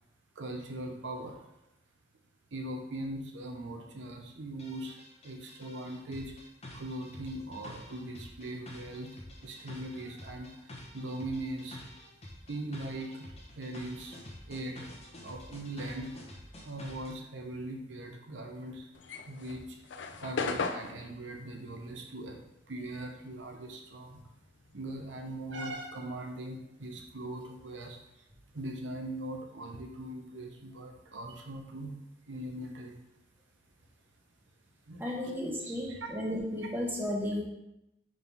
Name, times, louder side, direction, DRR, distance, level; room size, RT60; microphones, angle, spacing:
voice 1, 0.3-1.5 2.5-5.0 5.2-6.3 6.7-9.1 9.4-11.8 12.5-14.9 15.2-16.1 16.6-18.9 19.3-19.8 20.2-22.4 22.7-24.2 24.7-28.2 28.5-31.9 32.3-33.0 34.9-35.3 35.8-36.1, right 1 dB, 80° right, 2 dB, 0.9 m, -40 dB
sound 1, 4.6-17.2, left 1 dB, 35° left, 1.2 m, -48 dB
sound 2, 18.9-23.7 23.9-25.9, left 4 dB, 70° left, 0.5 m, -38 dB
voice 2, 35.0-37.4, left 1 dB, 10° right, -3 dB, 1.3 m, -33 dB
5.1 x 3.9 x 5.5 m, 0.88 s
head